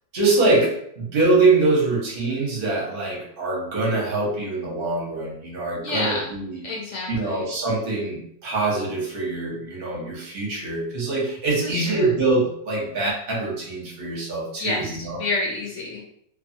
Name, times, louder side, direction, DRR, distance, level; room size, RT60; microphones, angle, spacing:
voice 1, 0.1-6.6 7.1-15.2, right 3 dB, 45° right, -3 dB, 0.9 m, -24 dB
voice 2, 5.8-6.3 6.6-7.5 11.6-12.1 14.6-16.0, left 2 dB, 65° left, -3 dB, 0.8 m, -29 dB
2.6 x 2.3 x 2.7 m, 0.69 s
omnidirectional pair, 1.6 m